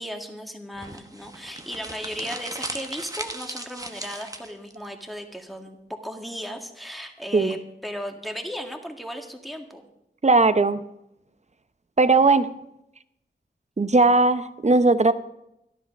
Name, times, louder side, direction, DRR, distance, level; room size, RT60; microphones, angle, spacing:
voice 1, 0.0-9.9, equal, ahead, 3 dB, 1.9 m, -36 dB
sound 1, 0.8-4.8, right 1 dB, 20° right, 1.1 m, -37 dB
voice 2, 10.2-10.8 12.0-12.5 13.8-15.1, right 3 dB, 35° right, 12 dB, 0.8 m, -18 dB
12.5 x 11.0 x 5.3 m, 0.83 s
wide cardioid pair, 50°, 19 cm